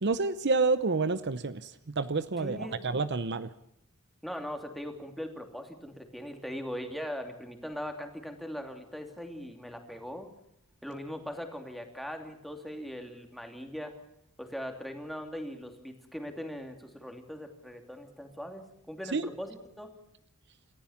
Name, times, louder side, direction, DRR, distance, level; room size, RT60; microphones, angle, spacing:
voice 1, 0.0-1.7 2.0-3.5 19.1-19.3, right 3 dB, 55° right, 13 dB, 0.8 m, -28 dB
voice 2, 2.4-2.8 4.2-10.3 10.8-13.9 14.4-19.9, equal, ahead, 4 dB, 2.8 m, -40 dB
28.0 x 14.5 x 7.3 m, 0.81 s
head